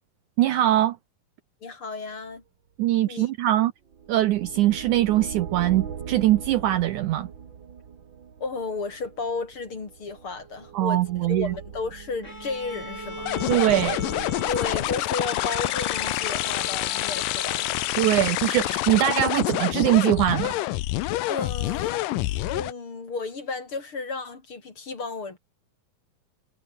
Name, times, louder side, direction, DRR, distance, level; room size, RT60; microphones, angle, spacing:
voice 1, 0.4-1.0 2.8-3.7 4.1-7.3 10.7-11.5 13.5-14.0 18.0-20.6, right 14 dB, 75° right, 2.0 m, -22 dB
voice 2, 1.6-2.4 3.1-3.3 8.4-13.4 14.5-17.7 21.3-22.1 22.5-25.4, left 4 dB, 35° left, 4.0 m, -33 dB
sound 1, 3.9-15.0, right 7 dB, 45° right, 1.8 m, -40 dB
Bowed string instrument, 12.2-18.5, left 1 dB, 20° left, 7.8 m, -39 dB
sound 2, 13.3-22.7, left 17 dB, 80° left, 2.4 m, -27 dB
omnidirectional pair, 4.1 m